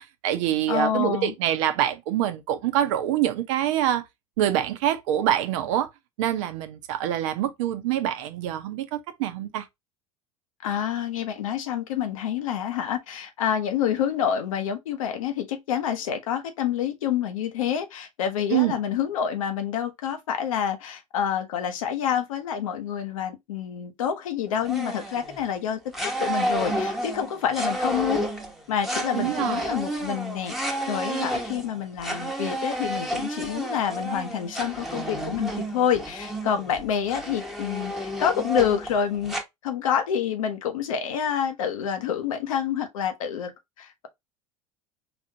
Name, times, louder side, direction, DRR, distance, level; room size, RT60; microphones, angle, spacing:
voice 1, 0.0-4.0 4.4-5.9 6.2-9.6 18.5-18.8 29.1-29.7, right 11 dB, 70° right, 0.8 m, -25 dB
voice 2, 0.7-1.3 10.6-28.3 28.7-37.9 38.2-39.3 39.6-43.5 43.8-44.1, left 8 dB, 75° left, 0.9 m, -28 dB
sound 1, 24.6-25.5 25.9-39.4, right 1 dB, ahead, 1.0 m, -31 dB
4.1 x 2.7 x 2.7 m
hypercardioid pair, 80°, 17 cm